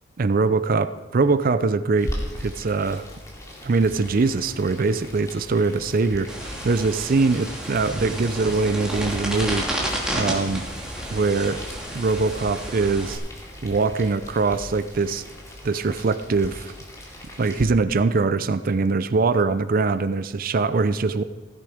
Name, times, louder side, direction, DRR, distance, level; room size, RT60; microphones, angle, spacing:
voice 1, 0.2-2.1 2.4-3.1 3.6-9.7 10.1-10.7 11.1-11.6 11.9-13.2 13.6-15.2 15.6-16.7 17.4-21.2, right 4 dB, 45° right, 13 dB, 0.5 m, -22 dB
Boiling, 2.0-17.6, equal, 15° left, 2.5 m, -39 dB
sound 1, 6.3-13.1, right 1 dB, 5° right, 2.6 m, -31 dB
16.0 x 10.5 x 5.0 m, 1.1 s
head